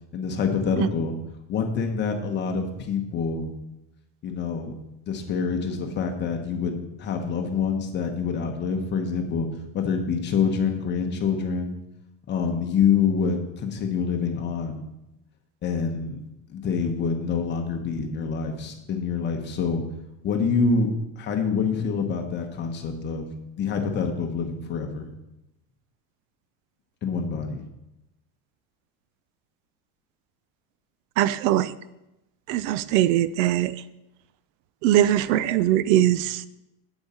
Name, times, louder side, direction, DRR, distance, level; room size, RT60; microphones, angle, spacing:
voice 1, 0.1-1.1 1.5-3.5 4.2-4.7 5.1-9.5 9.7-11.8 12.3-14.8 15.6-16.2 16.5-19.8 20.2-20.9 21.2-23.3 23.6-25.1 27.0-27.6, left 5 dB, 25° left, 4 dB, 1.1 m, -26 dB
voice 2, 31.2-31.7 32.5-33.7 34.8-36.4, right 13 dB, 70° right, 17 dB, 0.5 m, -21 dB
8.8 x 8.2 x 4.3 m, 0.92 s
cardioid pair, 170°, 40 cm